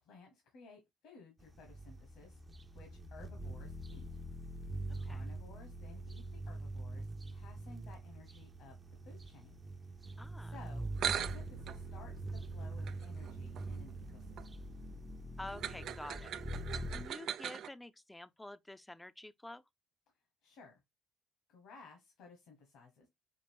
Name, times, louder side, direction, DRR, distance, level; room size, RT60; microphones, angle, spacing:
voice 1, 0.0-2.4 2.7-4.2 5.0-8.8 9.0-9.6 9.9-14.7 20.4-20.8 21.5-23.1, left 4 dB, 70° left, 1.4 m, -57 dB
sound 1, 1.4-17.1, right 2 dB, 30° right, 0.7 m, -44 dB
voice 2, 10.2-10.5 15.4-16.4 16.9-19.6, left 1 dB, 10° left, 0.5 m, -48 dB
sound 2, 10.7-10.8 11.0-17.7, right 9 dB, 60° right, 0.4 m, -42 dB
5.3 x 2.4 x 3.5 m
hypercardioid pair, 55°, 0 cm